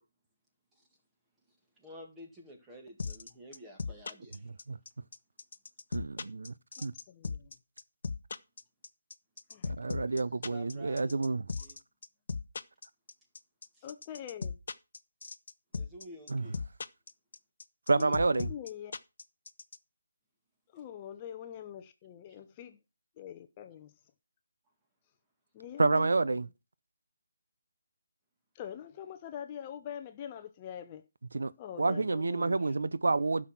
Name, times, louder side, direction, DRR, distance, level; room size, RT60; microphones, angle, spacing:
voice 1, 1.8-4.5 10.5-11.8 13.7-13.9 15.7-16.6, equal, 10° right, 2.0 m, -51 dB
sound 1, 3.0-19.8, left 4 dB, 55° left, 0.8 m, -37 dB
voice 2, 5.9-6.5 6.8-6.9 9.6-11.4 16.3-16.4 17.9-18.5 25.8-26.5 31.3-31.5 31.8-33.5, right 3 dB, 75° right, 0.6 m, -28 dB
voice 3, 6.8-7.5 9.5-9.7 13.8-14.6 17.9-18.9 20.7-22.8 23.2-23.9 25.5-26.4 28.5-31.0 31.6-32.6, left 9 dB, 20° left, 0.7 m, -44 dB
11.5 x 6.3 x 6.0 m
figure-of-eight pair, 165°, 0 cm